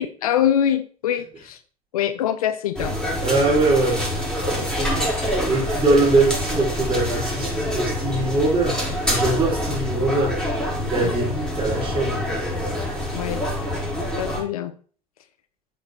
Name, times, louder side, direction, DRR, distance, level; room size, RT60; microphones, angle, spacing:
voice 1, 0.0-1.6 1.9-3.0 11.0-11.1 13.1-13.4 14.2-14.7, left 10 dB, 75° left, 11 dB, 0.7 m, -24 dB
sound 1, 2.7-14.4, equal, 5° left, 5.2 m, -26 dB
voice 2, 3.2-10.4 10.8-12.3, right 2 dB, 25° right, -7 dB, 4.1 m, -22 dB
7.9 x 6.8 x 4.4 m, 0.43 s
figure-of-eight pair, 70°, 19 cm